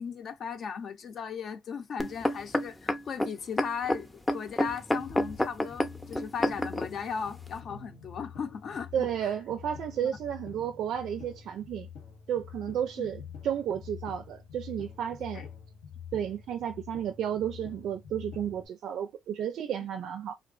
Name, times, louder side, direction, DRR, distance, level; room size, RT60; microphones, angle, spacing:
voice 1, 0.0-8.9 13.0-13.1 15.3-15.5, left 6 dB, 55° left, 0.6 m, -37 dB
sound 1, 2.0-6.9 7.6-7.7, left 1 dB, 15° left, 0.6 m, -29 dB
sound 2, 4.7-18.7, left 7 dB, 80° left, 1.2 m, -47 dB
voice 2, 8.9-11.9 12.3-15.5 16.1-20.3, right 9 dB, 70° right, 0.4 m, -32 dB
2.4 x 2.1 x 2.4 m
supercardioid pair, 65°, 0 cm